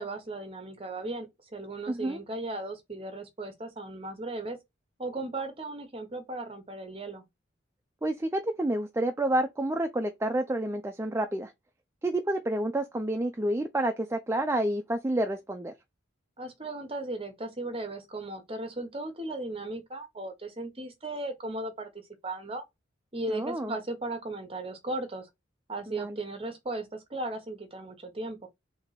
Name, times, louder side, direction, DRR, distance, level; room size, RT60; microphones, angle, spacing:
voice 1, 0.0-4.6 5.0-7.2 16.4-21.9 22.2-22.6 23.1-25.3 25.7-28.5, right 2 dB, 30° right, 1.0 m, -36 dB
voice 2, 1.9-2.2 8.0-11.5 12.0-15.7 23.3-23.8 25.9-26.2, right 1 dB, 15° right, 0.4 m, -29 dB
3.7 x 2.8 x 4.0 m
head